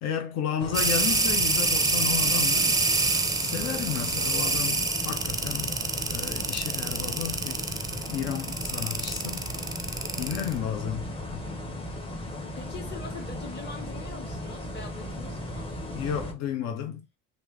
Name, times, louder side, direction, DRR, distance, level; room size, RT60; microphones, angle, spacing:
voice 1, 0.0-2.8 3.4-5.8 6.0-7.7 8.1-9.4 10.2-11.4 15.9-17.0, left 8 dB, 60° left, 0.9 m, -32 dB
sound 1, 0.6-16.3, left 1 dB, 15° left, 1.0 m, -36 dB
sound 2, 0.7-10.5, right 3 dB, 10° right, 0.6 m, -26 dB
voice 2, 12.5-15.7, left 5 dB, 35° left, 1.6 m, -43 dB
3.1 x 2.7 x 3.2 m
supercardioid pair, 90°, 30 cm